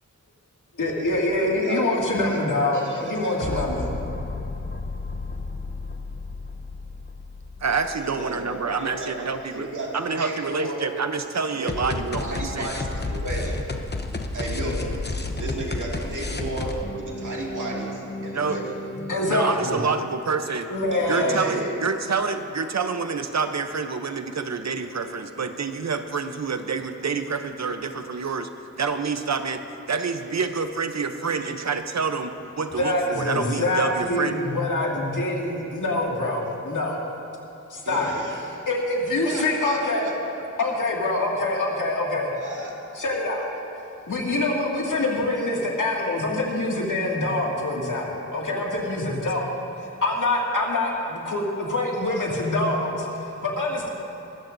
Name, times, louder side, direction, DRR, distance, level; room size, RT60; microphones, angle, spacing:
voice 1, 0.8-3.8 18.9-19.8 20.7-21.4 32.8-37.0 37.7-38.1 38.7-40.1 40.6-42.3 42.9-43.5 44.1-53.9, left 2 dB, 90° left, -2 dB, 2.2 m, -25 dB
voice 2, 1.3-2.4 2.7-4.0 8.0-9.1 9.5-10.8 11.5-12.0 12.2-13.6 14.3-15.0 15.4-18.7 20.9-21.7 37.8-38.6 39.2-40.7 42.3-42.7, right 2 dB, 80° right, -3 dB, 2.3 m, -33 dB
sound 1, 3.4-9.2 11.7-19.2, left 2 dB, 35° left, 0.9 m, -32 dB
voice 3, 7.6-12.7 18.3-18.6 19.3-20.7 21.1-28.5 28.8-29.6 29.9-34.4 48.5-48.6, right 5 dB, 60° right, 8 dB, 0.8 m, -27 dB
22.0 x 14.0 x 2.7 m, 2.8 s
wide cardioid pair, 95°, 30 cm